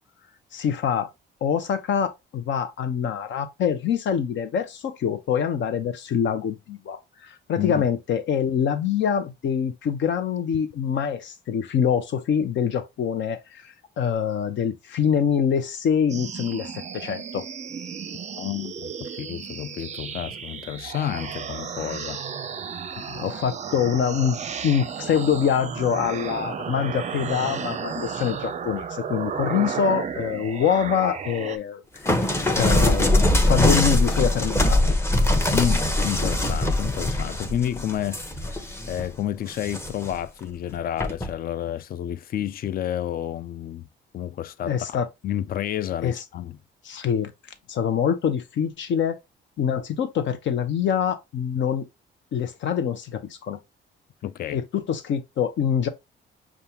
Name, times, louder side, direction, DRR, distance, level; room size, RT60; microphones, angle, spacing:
voice 1, 0.5-1.1 1.4-17.4 22.9-24.4 24.6-31.8 32.1-34.8 44.7-45.1 46.0-46.2 46.8-47.3 47.7-49.2 49.6-51.9 52.3-53.6 54.5-55.9, left 8 dB, 70° left, 0.8 m, -25 dB
sound 1, 16.1-31.6, right 7 dB, 35° right, 0.5 m, -33 dB
voice 2, 18.4-22.2 35.5-38.6 38.9-43.8 44.1-46.6 54.2-54.6, left 11 dB, 50° left, 0.4 m, -30 dB
sound 2, 32.1-39.0 39.5-40.1 41.0-41.3, left 1 dB, 15° left, 0.8 m, -22 dB
5.3 x 2.5 x 2.9 m
cardioid pair, 90°, 20 cm